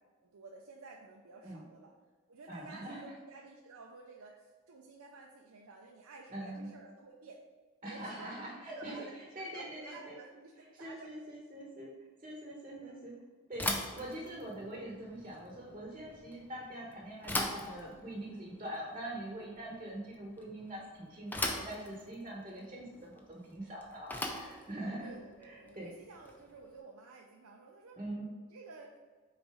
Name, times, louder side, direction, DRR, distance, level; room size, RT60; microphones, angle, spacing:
voice 1, 0.2-1.9 2.3-7.4 7.8-8.3 8.7-11.2 12.8-13.0 24.7-28.0 28.4-29.0, right 3 dB, 90° right, -1 dB, 0.6 m, -53 dB
voice 2, 2.5-3.1 6.3-6.7 7.8-10.2 10.8-11.9 12.2-13.1 13.5-13.7 13.9-25.1 25.4-25.9 27.9-28.3, right 1 dB, 25° right, -3 dB, 1.2 m, -43 dB
Bicycle / Thump thud, 13.5-26.6, left 1 dB, 10° left, 0.5 m, -41 dB
6.3 x 4.2 x 4.9 m, 1.4 s
head